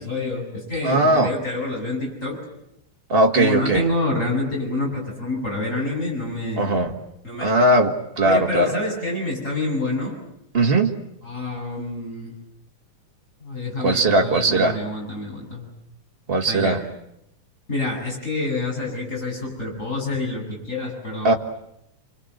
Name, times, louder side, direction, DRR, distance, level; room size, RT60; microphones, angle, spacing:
voice 1, 0.0-2.4 3.4-6.8 7.2-7.6 8.2-10.2 11.2-12.3 13.4-15.7 16.5-16.8 17.7-21.4, left 2 dB, 20° left, -1 dB, 7.9 m, -27 dB
voice 2, 0.8-1.3 3.1-3.8 6.6-6.9 7.4-8.7 10.5-10.9 13.8-14.8 16.3-16.8 21.2-21.3, right 2 dB, 45° right, 3 dB, 0.7 m, -19 dB
29.5 x 25.5 x 7.9 m, 0.81 s
omnidirectional pair, 4.1 m